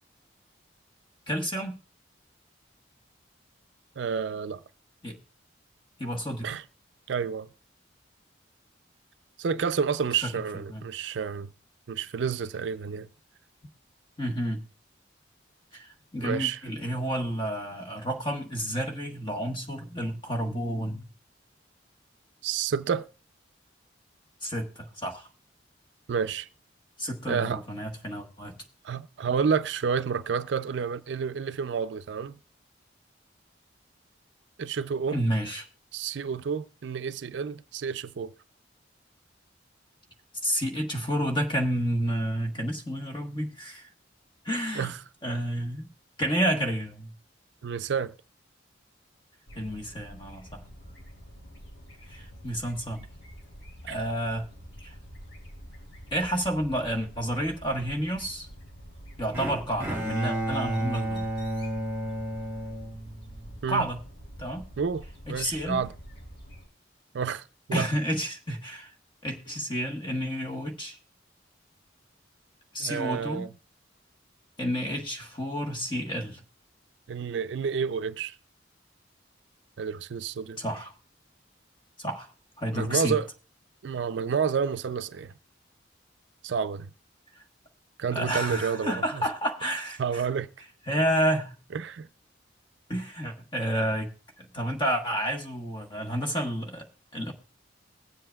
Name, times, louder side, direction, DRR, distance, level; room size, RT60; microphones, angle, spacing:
voice 1, 1.3-1.8 5.0-5.2 6.0-6.5 10.2-10.3 10.7-10.8 14.2-14.6 15.7-21.1 24.4-25.3 27.0-28.6 35.1-35.7 40.4-43.9 44.4-44.9 45.2-45.9 46.2-47.1 49.6-50.6 52.1-53.1 53.8-54.5 54.8-54.9 56.1-58.5 59.2-61.3 63.7-64.0 64.4-64.7 65.3-65.8 67.7-68.9 69.2-71.0 72.7-73.5 74.6-76.4 80.6-80.9 82.0-82.3 82.6-83.2 88.1-90.2 90.9-91.5 92.9-94.1 94.4-96.9 97.1-97.3, equal, 25° left, 1.3 m, -30 dB
voice 2, 4.0-4.6 6.4-6.6 7.1-7.5 9.4-11.5 11.9-13.1 16.2-16.6 22.4-23.1 26.1-26.5 27.3-27.6 28.8-32.4 34.6-35.2 35.9-38.3 44.8-45.0 47.6-48.1 53.9-54.0 63.6-63.9 64.8-65.9 67.1-67.9 72.8-73.5 77.1-78.4 79.8-80.6 82.7-83.3 83.8-85.3 86.4-86.9 88.0-89.3 90.0-90.5 91.7-92.1, right 6 dB, 70° right, 0.4 m, -30 dB
sound 1, 49.5-66.7, equal, 80° left, 2.9 m, -47 dB
Bowed string instrument, 59.3-63.6, right 1 dB, 15° right, 1.8 m, -32 dB
21.0 x 7.6 x 2.3 m
head